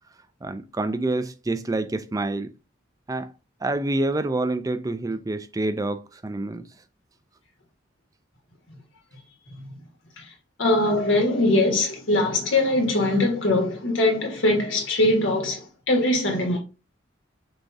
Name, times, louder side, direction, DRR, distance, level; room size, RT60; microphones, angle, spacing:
voice 1, 0.4-2.5 3.1-3.3 3.6-6.7, right 2 dB, 20° right, 0.3 m, -27 dB
voice 2, 10.6-16.6, left 2 dB, 80° left, 1.4 m, -22 dB
6.2 x 2.3 x 2.6 m
head